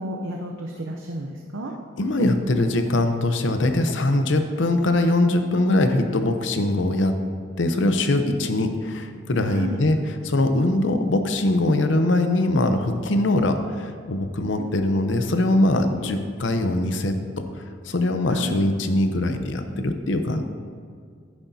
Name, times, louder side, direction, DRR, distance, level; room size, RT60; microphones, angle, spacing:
voice 1, 0.0-1.7 9.5-9.8 14.6-14.7 15.9-16.2 18.3-18.6, right 1 dB, 80° right, 1 dB, 0.7 m, -33 dB
voice 2, 2.0-7.1 7.6-10.0 10.2-17.3 17.8-20.4, left 2 dB, 65° left, 7 dB, 0.7 m, -22 dB
10.0 x 9.8 x 2.8 m, 2.1 s
head